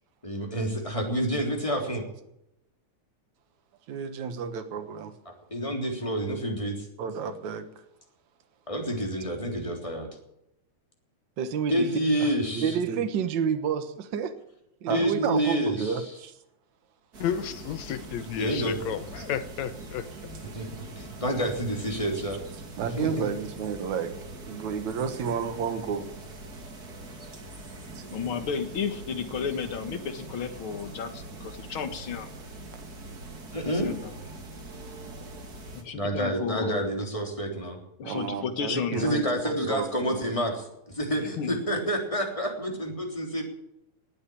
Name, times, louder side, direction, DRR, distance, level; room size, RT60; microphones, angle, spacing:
voice 1, 0.2-2.0 5.5-6.9 8.7-10.1 11.7-12.8 14.9-16.0 18.4-18.8 20.5-20.7 21.0-22.4 23.0-23.3 33.5-33.9 35.9-37.8 38.9-43.4, equal, 10° left, 2 dB, 3.3 m, -28 dB
voice 2, 3.9-5.1 7.0-7.6 12.2-12.3 12.5-13.0 14.9-16.4 19.2-19.3 22.8-24.1 24.5-26.1 27.9-28.0 38.0-40.3, right 6 dB, 75° right, 9 dB, 2.7 m, -32 dB
voice 3, 11.4-11.9 12.6-14.3 14.8-15.2, right 7 dB, 55° right, 9 dB, 1.3 m, -28 dB
sound 1, 17.1-35.8, right 2 dB, 35° right, 2.6 m, -43 dB
voice 4, 17.2-20.1, left 9 dB, 70° left, 13 dB, 2.2 m, -32 dB
voice 5, 28.1-32.3 33.7-34.2 35.7-36.9 38.0-39.1 41.2-41.6, left 6 dB, 50° left, 9 dB, 2.1 m, -33 dB
19.0 x 8.7 x 8.5 m, 0.82 s
omnidirectional pair, 3.4 m